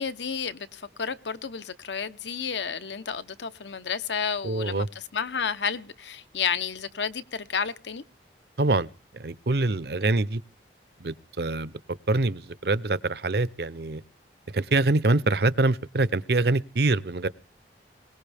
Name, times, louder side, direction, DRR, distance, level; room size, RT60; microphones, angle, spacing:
voice 1, 0.0-8.0, left 6 dB, 85° left, 1.0 m, -31 dB
voice 2, 4.4-4.9 8.6-8.9 9.2-10.4 11.0-11.7 12.1-14.0 14.5-17.3, right 2 dB, 65° right, 0.7 m, -24 dB
21.5 x 19.0 x 3.5 m
head